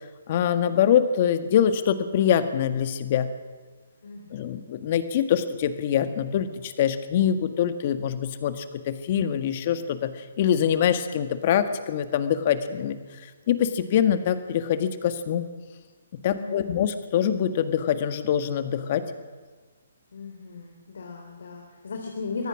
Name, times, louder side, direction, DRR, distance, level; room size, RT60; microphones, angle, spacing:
voice 1, 0.3-3.3 4.3-13.0 13.5-15.5 16.1-19.0, left 9 dB, 45° left, 9 dB, 1.7 m, -24 dB
voice 2, 4.0-4.6 16.3-16.9 20.1-22.5, left 4 dB, 75° left, 1 dB, 3.5 m, -37 dB
24.0 x 17.0 x 6.2 m, 1.4 s
hypercardioid pair, 145°, 0 cm